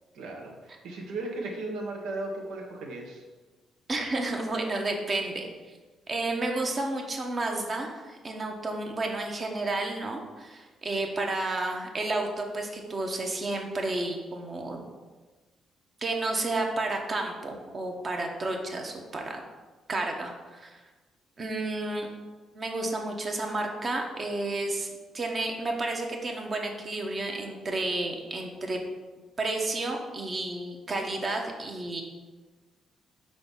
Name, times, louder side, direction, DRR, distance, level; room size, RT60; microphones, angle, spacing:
voice 1, 0.1-3.2, right 2 dB, 85° right, 1 dB, 1.2 m, -36 dB
voice 2, 3.9-5.5 6.1-14.9 16.0-19.4 19.9-20.8 21.4-22.1 22.5-24.9 25.1-28.8 29.4-32.0, right 2 dB, 40° right, 2 dB, 1.0 m, -31 dB
4.8 x 3.9 x 5.4 m, 1.3 s
cardioid pair, 90°, 0 cm